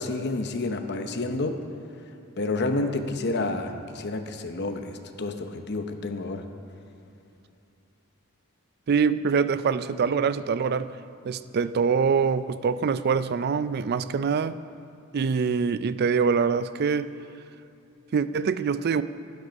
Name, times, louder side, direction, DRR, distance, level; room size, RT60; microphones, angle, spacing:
voice 1, 0.0-1.6 2.4-6.4, left 2 dB, 55° left, 6 dB, 0.8 m, -29 dB
voice 2, 8.9-10.9 11.2-14.6 15.1-17.1 18.1-19.0, right 6 dB, 50° right, 14 dB, 0.4 m, -24 dB
12.5 x 10.5 x 5.2 m, 2.7 s
head